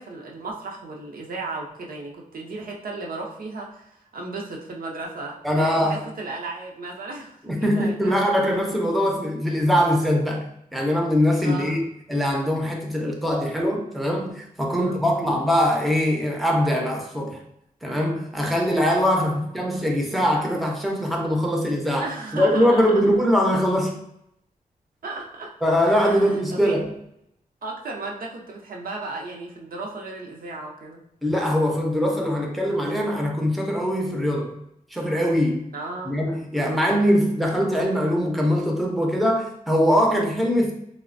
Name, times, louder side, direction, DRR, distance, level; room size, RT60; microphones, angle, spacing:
voice 1, 0.0-8.2 11.4-11.8 14.7-15.4 19.1-19.4 21.9-23.1 25.0-25.5 25.8-26.8 27.6-31.0 35.7-36.3 36.5-37.2, right 3 dB, 70° right, -1 dB, 0.6 m, -35 dB
voice 2, 5.4-6.0 7.5-10.4 10.7-17.4 17.8-24.0 25.6-26.9 31.2-34.6 34.9-35.7 36.1-40.7, equal, ahead, 0 dB, 0.5 m, -22 dB
3.2 x 2.0 x 2.5 m, 0.77 s
wide cardioid pair, 105°, 15 cm